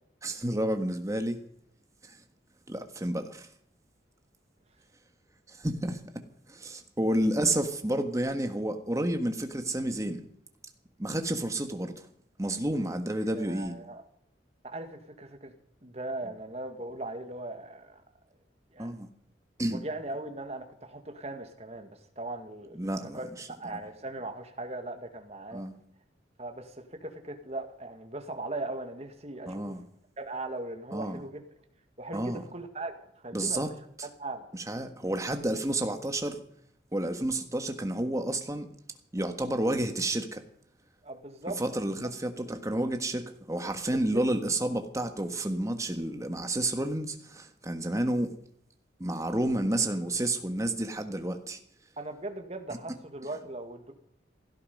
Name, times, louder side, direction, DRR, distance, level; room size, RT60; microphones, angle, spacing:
voice 1, 0.2-1.4 2.0-2.2 2.7-3.5 5.5-6.0 6.5-10.3 11.0-12.1 12.4-13.8 18.8-19.1 19.6-19.8 22.7-23.5 25.5-25.7 29.5-29.8 30.9-31.2 32.1-32.4 33.3-33.7 34.0-34.1 34.5-36.4 36.9-38.7 39.1-40.4 41.6-48.4 49.0-51.6, right 1 dB, 15° right, 6 dB, 1.5 m, -30 dB
voice 2, 13.2-14.0 14.6-15.5 15.8-18.0 18.7-19.0 19.7-21.9 22.2-25.6 26.4-29.8 30.2-31.4 32.0-33.7 34.2-34.5 41.0-42.1 43.9-44.0 52.0-53.9, right 2 dB, 35° right, 6 dB, 1.9 m, -39 dB
16.5 x 13.0 x 5.4 m, 0.70 s
head